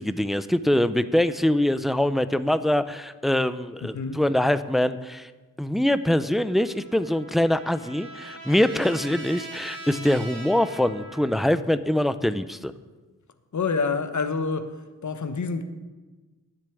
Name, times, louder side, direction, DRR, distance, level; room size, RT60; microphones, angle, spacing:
voice 1, 0.0-5.3 5.6-12.7, left 1 dB, ahead, 13 dB, 0.6 m, -23 dB
voice 2, 3.8-4.2 13.5-14.7 15.0-15.6, left 4 dB, 55° left, 9 dB, 1.2 m, -27 dB
Trumpet, 6.4-11.6, right 2 dB, 75° right, 2.4 m, -42 dB
10.0 x 6.9 x 8.4 m, 1.3 s
cardioid pair, 50°, 35 cm